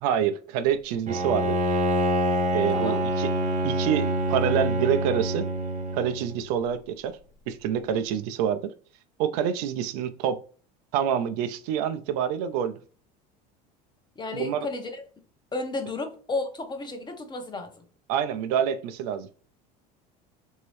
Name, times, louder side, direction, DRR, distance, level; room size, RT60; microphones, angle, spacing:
voice 1, 0.0-1.6 2.5-3.3 3.6-5.5 5.9-7.2 7.5-8.7 9.2-10.4 10.9-12.8 14.3-14.7 18.1-19.3, right 9 dB, 75° right, 0.5 m, -27 dB
Bowed string instrument, 1.1-6.4, right 1 dB, 35° right, 0.7 m, -26 dB
voice 2, 2.7-3.0 14.2-15.1 15.5-17.8, left 3 dB, 20° left, 0.8 m, -33 dB
3.0 x 2.7 x 3.1 m
supercardioid pair, 95°, 20 cm